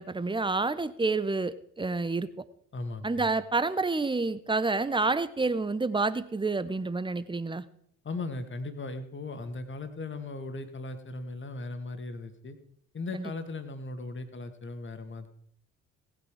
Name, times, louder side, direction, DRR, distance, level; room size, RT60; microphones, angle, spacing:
voice 1, 0.0-2.3 3.0-7.6 13.1-13.3, right 3 dB, 15° right, 15 dB, 1.1 m, -29 dB
voice 2, 2.7-3.3 8.0-12.6 12.9-15.3, left 3 dB, 30° left, 9 dB, 2.2 m, -38 dB
18.5 x 9.1 x 4.9 m, 0.67 s
figure-of-eight pair, 45°, 37 cm